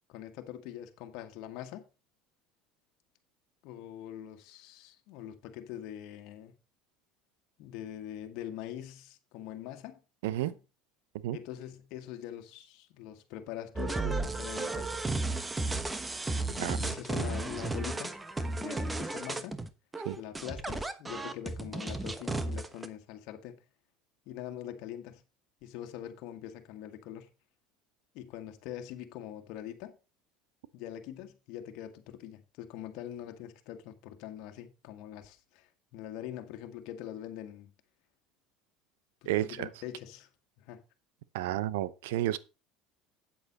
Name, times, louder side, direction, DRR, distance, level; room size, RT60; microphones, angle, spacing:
voice 1, 0.1-1.9 3.6-6.5 7.6-10.0 10.3-10.6 11.3-15.0 16.5-18.2 18.6-19.6 20.2-23.6 24.3-25.2 25.6-27.3 28.1-30.0 30.7-37.7 39.2-40.3 40.6-40.8, left 11 dB, 65° left, 1.7 m, -43 dB
sound 1, 13.8-22.9, right 2 dB, 15° right, 1.1 m, -34 dB
voice 2, 39.3-39.7 41.3-42.4, right 14 dB, 85° right, 0.7 m, -31 dB
8.7 x 8.1 x 4.1 m
supercardioid pair, 95°, 0 cm